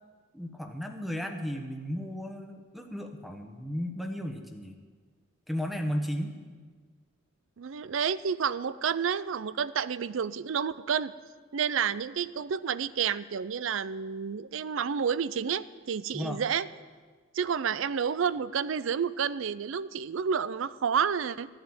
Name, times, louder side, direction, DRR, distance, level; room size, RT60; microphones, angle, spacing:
voice 1, 0.3-4.8 5.5-6.3 16.1-16.4, equal, ahead, 4 dB, 1.0 m, -34 dB
voice 2, 7.6-11.1 11.5-16.7 17.3-21.5, right 7 dB, 65° right, 17 dB, 0.5 m, -30 dB
14.0 x 7.9 x 8.8 m, 1.5 s
head